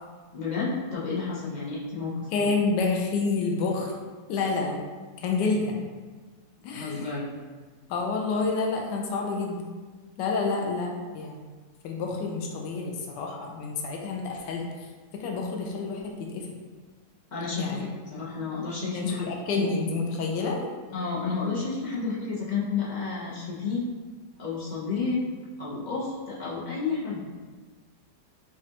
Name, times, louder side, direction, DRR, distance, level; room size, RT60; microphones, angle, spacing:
voice 1, 0.3-2.5 6.7-7.3 17.3-19.2 19.5-19.7 20.9-23.9 24.4-25.3 25.6-27.3, left 4 dB, 45° left, -7 dB, 0.5 m, -31 dB
voice 2, 2.3-3.9 4.3-4.8 5.2-5.8 6.6-7.1 7.9-9.6 10.2-11.4 11.8-14.6 15.1-16.6 17.6-17.8 18.9-20.6, left 4 dB, 85° left, 0 dB, 1.2 m, -28 dB
5.1 x 2.4 x 2.8 m, 1.4 s
omnidirectional pair, 1.8 m